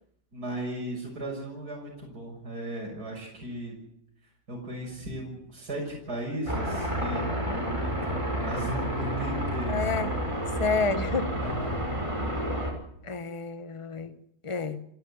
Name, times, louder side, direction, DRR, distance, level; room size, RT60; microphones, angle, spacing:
voice 1, 0.3-3.7 4.5-9.8 11.4-11.8, right 1 dB, 55° right, 0 dB, 6.8 m, -36 dB
sound 1, 6.5-12.7, equal, 15° right, 5.9 m, -30 dB
voice 2, 7.3-7.7 9.7-10.1 10.6-11.3 13.0-14.1 14.4-14.8, left 4 dB, 20° left, 10 dB, 1.5 m, -30 dB
30.0 x 12.5 x 9.8 m, 0.75 s
omnidirectional pair, 1.9 m